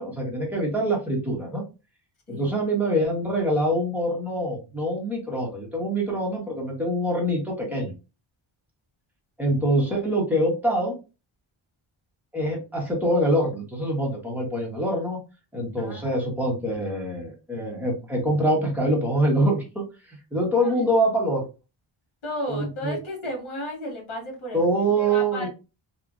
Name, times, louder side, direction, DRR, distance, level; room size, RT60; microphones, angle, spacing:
voice 1, 0.0-1.6 2.3-7.9 9.4-11.0 12.3-15.2 15.5-21.5 22.5-23.0 24.5-25.5, right 1 dB, 5° right, -3 dB, 0.9 m, -25 dB
voice 2, 2.3-2.6 15.8-16.6 20.6-20.8 22.2-25.5, left 1 dB, 70° left, 1 dB, 1.6 m, -34 dB
3.0 x 2.4 x 2.4 m, 0.30 s
wide cardioid pair, 170°, 49 cm